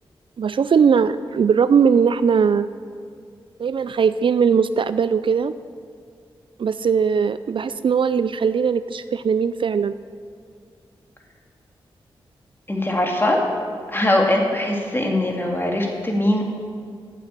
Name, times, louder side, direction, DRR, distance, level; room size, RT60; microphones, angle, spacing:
voice 1, 0.4-2.7 3.6-5.5 6.6-9.9, right 6 dB, 60° right, 14 dB, 0.4 m, -19 dB
voice 2, 12.7-13.4 13.9-16.4, left 1 dB, 20° left, 0 dB, 2.3 m, -21 dB
9.1 x 7.8 x 8.3 m, 2.2 s
cardioid pair, 45°, 10 cm